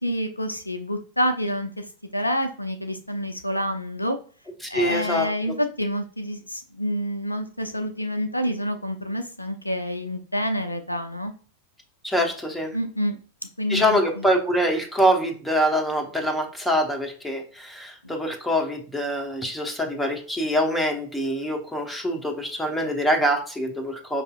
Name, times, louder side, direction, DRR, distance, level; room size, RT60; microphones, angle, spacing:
voice 1, 0.0-1.9 2.1-4.2 4.7-11.3 12.7-13.2 13.6-14.2 18.0-18.1, equal, 85° left, 7 dB, 0.4 m, -28 dB
voice 2, 4.7-5.5 12.0-12.7 13.7-24.2, equal, 5° left, 2 dB, 0.8 m, -24 dB
4.8 x 2.7 x 2.3 m, 0.40 s
figure-of-eight pair, 90°, 0 cm